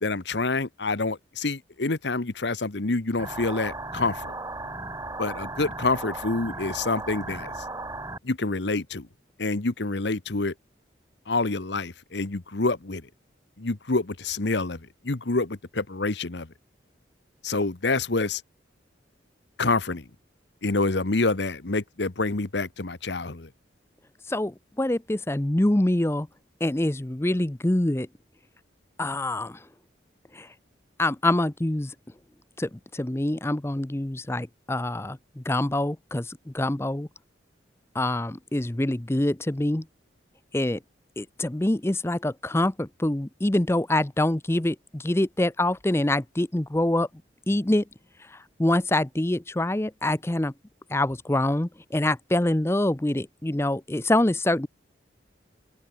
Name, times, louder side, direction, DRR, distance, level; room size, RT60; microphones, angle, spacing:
voice 1, 0.0-4.3 5.2-7.6 8.2-9.1 9.4-10.5 11.3-13.1 13.6-16.5 17.4-18.4 19.6-20.1 20.6-23.5, left 3 dB, 65° left, 1.1 m, -27 dB
sound 1, 3.2-8.2, right 2 dB, 15° right, 1.8 m, -36 dB
voice 2, 24.3-26.3 26.6-28.1 29.0-29.6 30.3-30.5 31.0-31.9 32.6-37.1 37.9-39.8 40.5-40.8 41.2-47.1 47.5-47.8 48.2-50.5 50.9-54.7, left 1 dB, 15° left, 0.6 m, -25 dB
open air
head